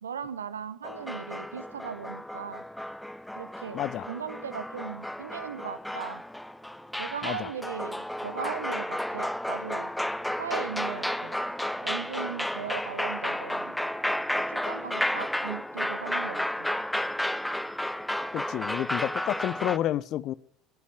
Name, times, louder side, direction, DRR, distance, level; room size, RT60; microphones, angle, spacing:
voice 1, 0.0-2.6 3.4-6.2 7.0-9.9 10.4-11.4 11.8-13.8 14.5-16.7, right 7 dB, 75° right, 0.9 m, -38 dB
sound 1, 0.8-19.8, left 1 dB, 5° left, 0.6 m, -32 dB
voice 2, 3.7-4.1 7.2-7.5 18.3-20.3, left 12 dB, 45° left, 0.5 m, -30 dB
17.0 x 8.4 x 9.1 m
figure-of-eight pair, 65°, 0 cm